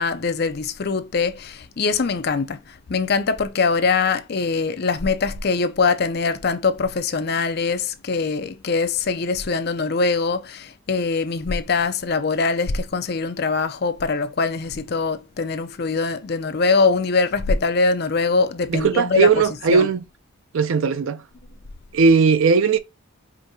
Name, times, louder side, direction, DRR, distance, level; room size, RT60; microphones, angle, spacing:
voice 1, 0.0-19.3 19.7-19.9, left 4 dB, 50° left, 0.5 m, -22 dB
voice 2, 18.7-20.0 20.5-21.2 21.9-22.8, right 5 dB, 75° right, 0.5 m, -17 dB
5.0 x 2.7 x 2.6 m
head